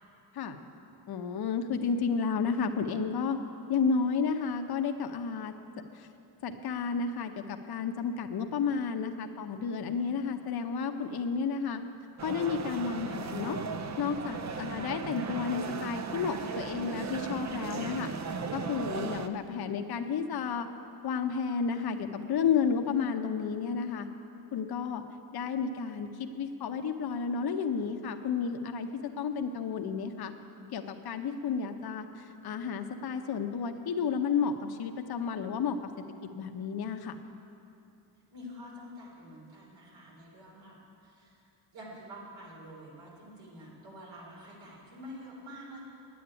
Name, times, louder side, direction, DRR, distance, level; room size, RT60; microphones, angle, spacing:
voice 1, 1.1-3.4 3.7-5.5 5.9-6.1 6.4-11.8 12.2-13.6 14.0-18.1 18.5-20.7 21.0-24.1 24.5-25.0 25.3-28.9 29.2-30.3 30.7-35.8 36.2-37.2, left 6 dB, 55° left, 6 dB, 0.8 m, -31 dB
sound 1, 12.2-19.3, right 5 dB, 40° right, 0.6 m, -36 dB
voice 2, 38.3-40.8 41.0-45.8, equal, 75° right, -4 dB, 3.7 m, -47 dB
9.3 x 8.6 x 9.7 m, 2.8 s
cardioid pair, 115°, 46 cm